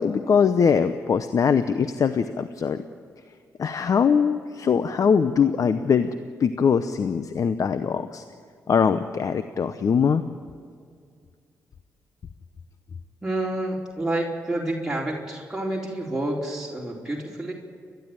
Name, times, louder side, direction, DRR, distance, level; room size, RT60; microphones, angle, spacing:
voice 1, 0.0-2.8 3.6-6.1 6.4-8.2 8.7-10.2, left 6 dB, 60° left, 11 dB, 0.8 m, -22 dB
voice 2, 13.2-17.5, right 1 dB, 10° right, -4 dB, 4.3 m, -29 dB
29.5 x 12.0 x 8.9 m, 2.2 s
supercardioid pair, 45°, 7 cm